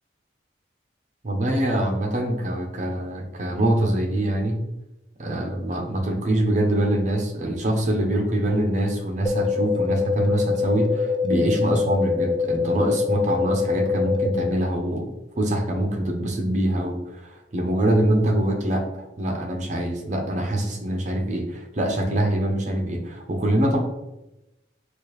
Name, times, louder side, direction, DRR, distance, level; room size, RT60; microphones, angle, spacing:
voice 1, 1.2-4.6 5.2-15.1 15.4-23.8, right 1 dB, 40° right, 3 dB, 0.5 m, -24 dB
sound 1, 9.3-14.3, left 5 dB, 25° left, 0.3 m, -24 dB
4.0 x 2.4 x 3.1 m, 0.95 s
head